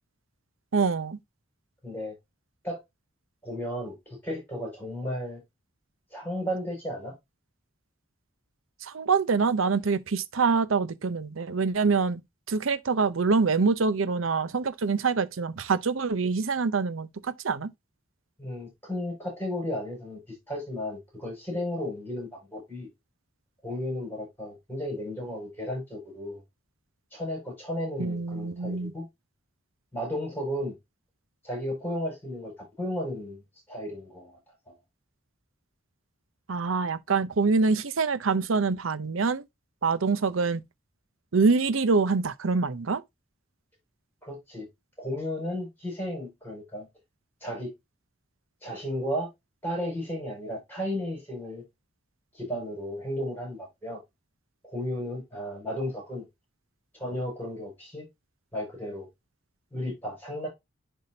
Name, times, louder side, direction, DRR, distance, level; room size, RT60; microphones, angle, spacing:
voice 1, 0.7-1.2 8.8-12.2 12.5-17.7 28.0-28.9 36.5-39.4 39.8-40.6 41.3-43.0, right 4 dB, 85° right, 0.7 m, -25 dB
voice 2, 1.8-2.1 2.6-2.8 3.4-5.4 6.1-7.1 18.4-20.2 20.5-22.9 23.6-26.4 27.1-29.1 29.9-30.7 31.4-33.4 33.7-34.3 34.7-34.8 44.2-44.7 45.0-46.9 47.4-47.7 48.6-49.3 49.6-51.6 52.3-54.0 54.6-56.2 57.0-58.1 58.5-59.1 59.7-60.5, left 1 dB, 10° left, 5.4 m, -34 dB
10.5 x 3.7 x 2.7 m
head